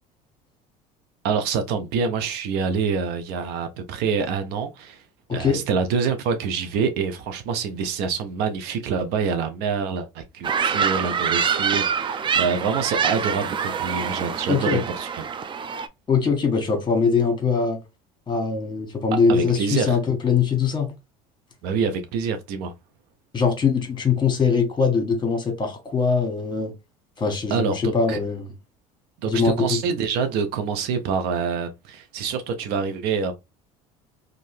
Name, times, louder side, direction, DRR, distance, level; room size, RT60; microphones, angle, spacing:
voice 1, 1.2-5.0 5.3-15.3 19.3-20.0 21.6-22.7 27.5-28.2 29.2-33.3, right 5 dB, 70° right, 0.6 m, -26 dB
voice 2, 5.3-5.6 14.5-14.8 16.1-17.8 18.3-20.9 23.3-26.7 27.2-28.5 29.3-29.8, left 5 dB, 25° left, 1.4 m, -22 dB
sound 1, 10.4-15.9, right 7 dB, 30° right, 0.4 m, -25 dB
2.7 x 2.5 x 3.2 m
supercardioid pair, 85°, 17 cm